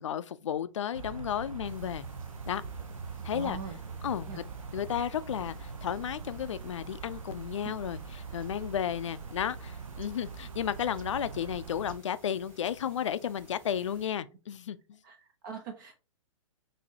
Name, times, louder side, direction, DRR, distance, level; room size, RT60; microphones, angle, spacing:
voice 1, 0.0-2.1 2.5-2.6 3.2-3.6 4.0-4.4 4.7-15.0, left 9 dB, 65° left, 0.4 m, -33 dB
sound 1, 0.9-12.0, right 5 dB, 80° right, 0.5 m, -42 dB
sound 2, 1.6-14.1, left 1 dB, 15° right, 1.7 m, -56 dB
voice 2, 3.3-3.7 4.3-4.4 7.6-7.7 15.0-15.9, right 5 dB, 35° right, 0.6 m, -41 dB
5.9 x 2.7 x 2.7 m
figure-of-eight pair, 110°, 17 cm